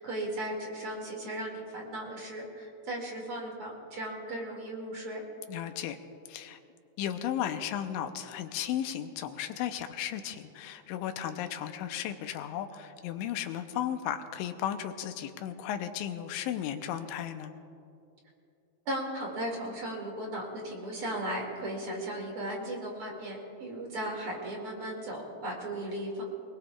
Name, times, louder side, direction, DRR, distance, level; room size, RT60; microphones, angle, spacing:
voice 1, 0.0-5.2 18.9-26.2, right 1 dB, 40° right, -1 dB, 2.5 m, -36 dB
voice 2, 5.5-6.0 6.3-6.6 7.0-17.5, left 10 dB, 90° left, 7 dB, 3.0 m, -35 dB
27.5 x 20.0 x 2.4 m, 2.6 s
omnidirectional pair, 5.3 m